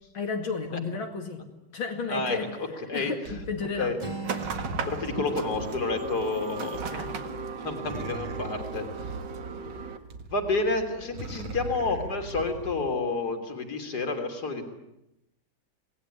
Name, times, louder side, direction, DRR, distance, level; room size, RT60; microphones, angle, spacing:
voice 1, 0.1-1.4 1.7-2.6 2.9-4.0 4.3-4.5 6.6-7.1, left 4 dB, 80° left, 2 dB, 3.2 m, -33 dB
voice 2, 2.9-3.4 3.8-4.0 4.9-7.1 7.6-9.1 10.3-14.6, left 3 dB, 55° left, 6 dB, 3.8 m, -30 dB
sound 1, 3.3-13.0, right 3 dB, 90° right, 2.6 m, -41 dB
Acoustic guitar, 4.0-7.9, right 3 dB, 20° right, 3.3 m, -42 dB
sound 2, 4.2-10.0, right 5 dB, 60° right, 2.4 m, -36 dB
27.5 x 19.5 x 10.0 m, 0.89 s
omnidirectional pair, 2.1 m